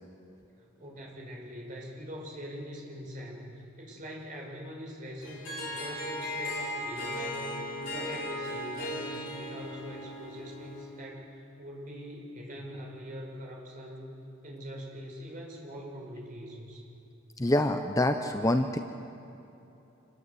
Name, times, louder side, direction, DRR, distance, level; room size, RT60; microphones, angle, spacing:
voice 1, 0.6-14.1 14.4-16.8, equal, 40° right, -1 dB, 5.7 m, -43 dB
Harp, 5.2-11.0, left 1 dB, 60° left, 5.4 m, -37 dB
voice 2, 17.4-18.8, left 1 dB, 15° left, 6 dB, 0.8 m, -26 dB
26.5 x 20.5 x 8.4 m, 3.0 s
head